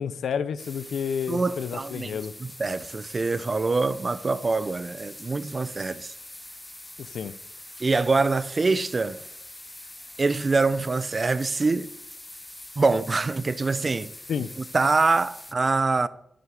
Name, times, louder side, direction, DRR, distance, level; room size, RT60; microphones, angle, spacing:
voice 1, 0.0-2.3 7.0-7.3 14.3-14.5, left 7 dB, 85° left, 0.7 m, -30 dB
sound 1, 0.6-15.5, left 1 dB, 15° left, 0.8 m, -44 dB
voice 2, 1.3-6.1 7.8-9.2 10.2-11.9 12.8-14.1 14.6-16.1, right 3 dB, 35° right, 0.8 m, -25 dB
12.0 x 9.5 x 8.3 m
cardioid pair, 95°, 0 cm